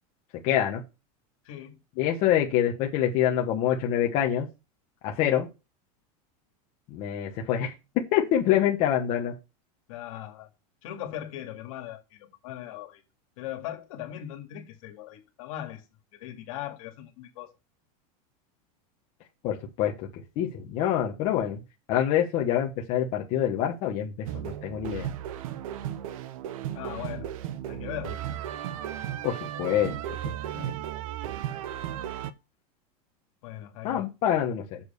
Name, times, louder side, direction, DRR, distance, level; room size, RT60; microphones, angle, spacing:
voice 1, 0.4-0.8 2.0-4.5 5.0-5.5 6.9-7.7 8.1-9.3 19.4-20.1 20.4-21.6 21.9-25.1 29.2-30.0 30.5-30.7 33.8-34.8, left 10 dB, 35° left, 1.2 m, -26 dB
voice 2, 1.4-1.8 9.9-10.5 10.8-13.0 13.4-15.8 16.2-17.5 26.7-27.3 27.7-28.2 33.4-34.1, left 12 dB, 60° left, 2.2 m, -39 dB
sound 1, 24.3-32.3, right 11 dB, 65° right, 0.8 m, -35 dB
7.2 x 4.4 x 6.8 m
supercardioid pair, 180°, 19 cm